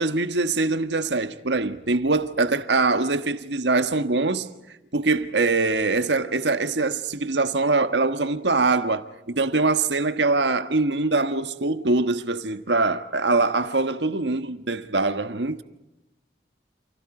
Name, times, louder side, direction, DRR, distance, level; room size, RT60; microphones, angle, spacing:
voice 1, 0.0-4.5 4.9-15.6, right 3 dB, 85° right, 1.5 m, -23 dB
29.5 x 28.5 x 5.0 m
head